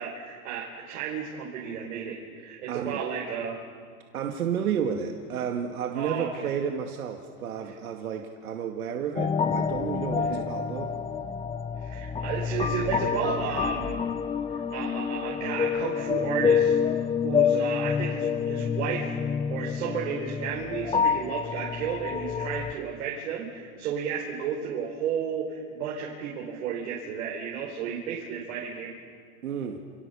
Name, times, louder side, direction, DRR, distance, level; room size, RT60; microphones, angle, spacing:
voice 1, 0.0-3.6 5.9-6.5 10.2-10.4 11.8-14.0 14.5-28.9, right 7 dB, 75° right, -2 dB, 4.9 m, -33 dB
voice 2, 2.7-3.0 4.1-10.9 29.4-29.8, right 7 dB, 90° right, 3 dB, 2.3 m, -31 dB
sound 1, 9.2-22.7, left 7 dB, 15° left, 0.8 m, -28 dB
29.5 x 29.0 x 7.0 m, 2.1 s
hypercardioid pair, 120°, 42 cm